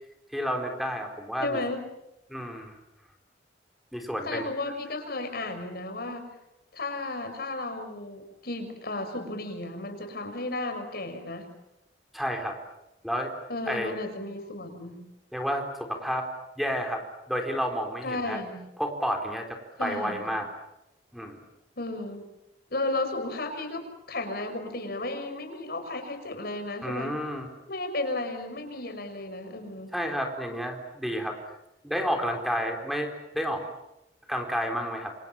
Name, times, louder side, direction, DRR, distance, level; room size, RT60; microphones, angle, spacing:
voice 1, 0.3-1.6 2.3-2.7 3.9-4.5 12.1-12.6 13.0-13.3 13.7-14.0 15.3-16.3 16.6-18.4 18.8-20.5 21.1-21.4 26.8-27.5 29.9-31.4 31.8-33.6 34.3-35.1, equal, ahead, 3 dB, 4.0 m, -30 dB
voice 2, 1.4-1.8 4.2-6.3 6.7-11.5 13.5-15.0 18.0-18.6 19.8-20.3 21.8-22.2 22.7-27.1 27.7-29.9, left 2 dB, 60° left, 7 dB, 6.0 m, -34 dB
28.5 x 27.5 x 7.2 m, 0.88 s
head